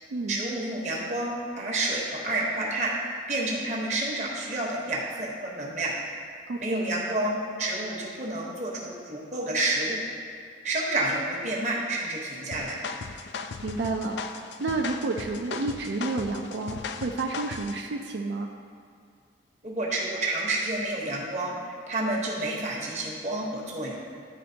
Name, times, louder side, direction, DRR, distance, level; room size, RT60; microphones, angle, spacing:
voice 1, 0.3-2.9 3.3-5.9 6.6-10.0 10.6-12.8 19.6-24.0, right 2 dB, 40° right, -3 dB, 1.1 m, -29 dB
voice 2, 6.5-6.9 13.6-18.5, right 3 dB, 80° right, 2 dB, 0.4 m, -30 dB
sound 1, 12.5-17.8, left 5 dB, 75° left, 0.3 m, -37 dB
11.0 x 4.3 x 2.8 m, 2.4 s
head